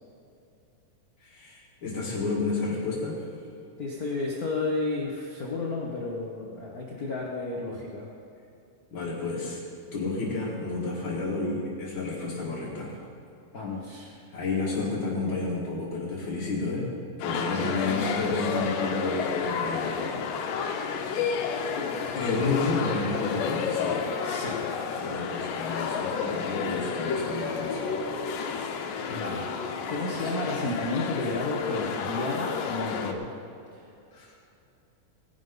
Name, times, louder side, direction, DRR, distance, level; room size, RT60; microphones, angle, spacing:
voice 1, 1.2-3.2 8.9-9.6 9.9-12.9 14.3-16.9 17.2-20.1 21.8-24.4 25.0-27.9 34.1-34.4, left 3 dB, 40° left, -8 dB, 2.4 m, -31 dB
voice 2, 3.8-8.1 13.5-14.1 17.5-18.1 21.9-22.7 24.2-24.8 28.4-29.6 29.9-33.3 33.7-33.9, left 2 dB, 70° left, -3 dB, 0.8 m, -33 dB
sound 1, 17.2-33.1, left 6 dB, 85° left, 2.5 m, -31 dB
sound 2, 26.6-31.8, right 2 dB, 50° right, 4.1 m, -45 dB
18.0 x 10.5 x 4.0 m, 2.7 s
omnidirectional pair, 3.8 m